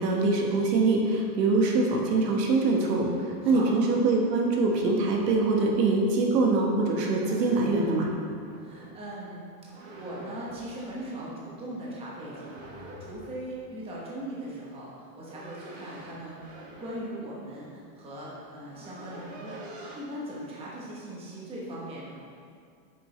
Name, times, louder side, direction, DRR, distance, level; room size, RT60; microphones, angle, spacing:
voice 1, 0.0-8.1, right 3 dB, 80° right, -1 dB, 1.7 m, -24 dB
voice 2, 3.4-3.7 8.6-22.2, right 1 dB, 10° right, -6 dB, 1.1 m, -40 dB
sound 1, 7.0-9.0 9.7-10.8 12.2-13.4 14.9-17.2 18.1-18.2 18.4-20.0, right 2 dB, 35° right, 1.3 m, -46 dB
8.8 x 6.7 x 3.3 m, 2.2 s
supercardioid pair, 165°, 48 cm